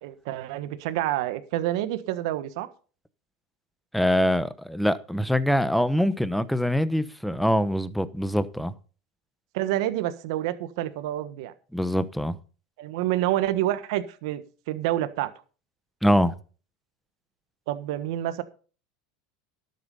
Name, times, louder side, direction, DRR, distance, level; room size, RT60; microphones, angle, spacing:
voice 1, 0.0-2.7 9.5-11.5 12.8-14.4 14.7-15.3 17.7-18.4, right 14 dB, 70° right, 1.3 m, -28 dB
voice 2, 3.9-8.7 11.7-12.4 16.0-16.3, equal, ahead, 1.0 m, -24 dB
12.0 x 8.0 x 5.6 m
supercardioid pair, 105°, 3 cm